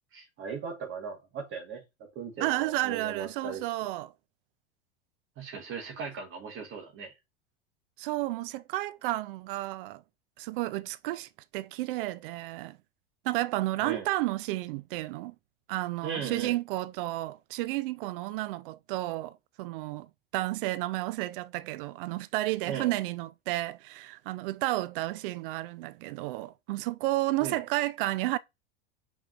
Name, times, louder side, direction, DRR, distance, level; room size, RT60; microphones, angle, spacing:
voice 1, 0.1-3.6 5.4-7.1 13.8-14.1 16.0-16.6 22.7-22.9 27.4-27.6, right 6 dB, 40° right, 1.6 m, -38 dB
voice 2, 2.4-4.1 8.0-10.0 10.4-12.8 13.2-15.3 15.7-28.4, right 18 dB, 60° right, 0.5 m, -32 dB
5.8 x 3.6 x 2.5 m
hypercardioid pair, 90°, 31 cm